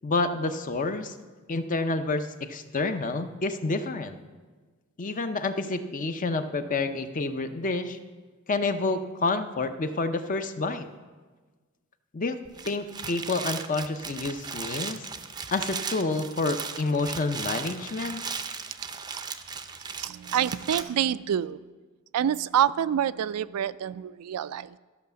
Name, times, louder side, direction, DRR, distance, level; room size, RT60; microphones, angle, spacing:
voice 1, 0.0-1.1 1.5-4.2 5.0-8.0 8.5-10.9 12.1-12.4 12.6-15.0 15.5-18.2, left 3 dB, 35° left, 9 dB, 0.6 m, -29 dB
sound 1, 12.4-20.8, right 5 dB, 20° right, 0.5 m, -36 dB
voice 2, 20.0-21.7 22.1-24.8, right 9 dB, 85° right, 16 dB, 0.3 m, -27 dB
13.0 x 5.7 x 6.9 m, 1.4 s
head